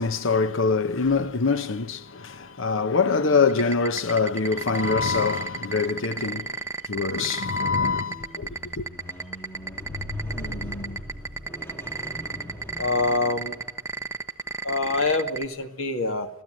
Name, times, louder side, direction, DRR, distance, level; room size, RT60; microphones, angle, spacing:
voice 1, 0.0-6.6 6.9-8.5 8.8-8.9, left 4 dB, 65° left, 1.0 m, -24 dB
sound 1, 3.5-15.4, right 4 dB, 15° right, 1.0 m, -31 dB
Squeak, 7.7-14.1 14.8-15.0, left 1 dB, 10° left, 2.1 m, -39 dB
voice 2, 10.2-11.0 12.8-13.5 14.6-16.3, left 3 dB, 85° left, 2.3 m, -26 dB
25.0 x 16.0 x 9.1 m
head